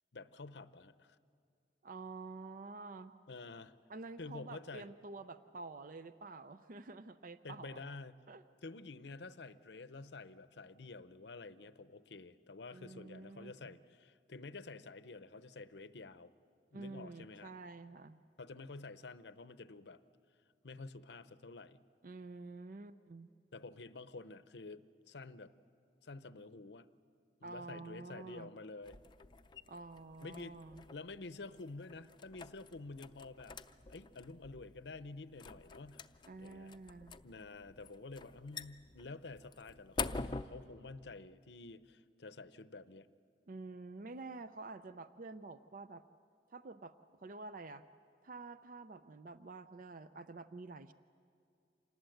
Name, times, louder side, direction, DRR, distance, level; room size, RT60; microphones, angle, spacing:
voice 1, 0.1-1.2 3.3-3.7 4.2-4.9 7.4-8.1 8.6-16.3 16.7-17.5 18.4-20.0 20.6-21.8 23.5-25.5 26.0-26.9 27.4-29.0 30.2-30.6 30.9-33.6 33.9-36.1 36.4-36.7 37.2-43.1, left 3 dB, 75° left, 13 dB, 0.7 m, -49 dB
voice 2, 1.8-3.1 3.9-7.8 8.3-8.4 12.7-13.8 16.7-18.2 22.0-23.3 27.4-28.5 29.7-30.8 36.3-37.2 43.5-46.0 46.5-46.9 47.2-47.8 48.2-50.9, right 3 dB, 50° right, 12 dB, 0.5 m, -49 dB
sound 1, 28.8-40.4, left 4 dB, 25° left, 0.5 m, -47 dB
27.0 x 19.5 x 7.9 m, 2.3 s
head